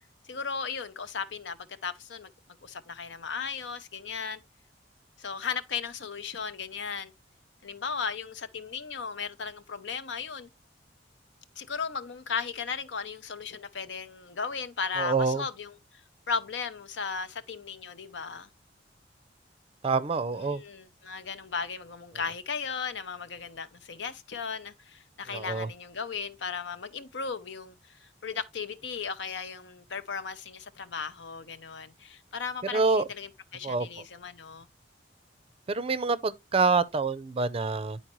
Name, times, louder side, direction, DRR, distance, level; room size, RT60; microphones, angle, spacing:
voice 1, 0.2-2.3 2.6-4.4 5.2-7.1 7.6-10.5 11.6-15.7 16.3-18.5 20.5-34.7, left 5 dB, 80° left, 0.7 m, -36 dB
voice 2, 15.0-15.5 19.8-20.6 25.3-25.7 32.7-33.0 33.6-33.9 35.7-38.0, right 4 dB, 35° right, 0.5 m, -26 dB
10.0 x 4.3 x 3.0 m
head